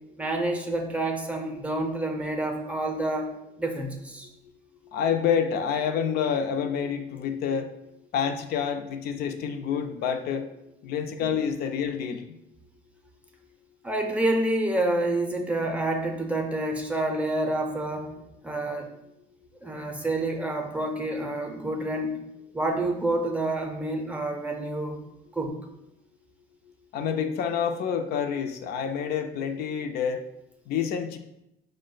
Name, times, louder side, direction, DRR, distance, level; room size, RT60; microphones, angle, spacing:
voice 1, 0.2-3.3 3.6-4.3 11.2-11.3 13.8-18.1 18.4-18.9 19.6-22.2 22.5-25.0 25.3-25.5, right 1 dB, 10° right, 3 dB, 0.6 m, -28 dB
voice 2, 4.9-7.7 8.1-10.5 10.8-12.3 26.9-30.2 30.7-31.2, left 7 dB, 70° left, 7 dB, 0.4 m, -28 dB
4.7 x 2.1 x 3.8 m, 0.84 s
cardioid pair, 110°, 17 cm